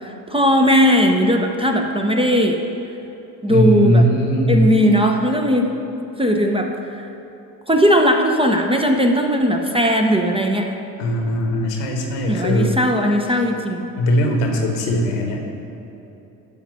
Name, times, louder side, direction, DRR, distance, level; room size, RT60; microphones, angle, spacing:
voice 1, 0.3-2.6 3.4-4.0 4.5-5.7 6.2-6.7 7.0-7.1 7.7-10.7 12.3-13.8, equal, 10° right, 3 dB, 0.8 m, -17 dB
voice 2, 3.5-4.7 11.0-12.7 14.0-15.4, equal, 70° left, 2 dB, 1.3 m, -19 dB
12.5 x 5.0 x 5.3 m, 3.0 s
figure-of-eight pair, 40°, 49 cm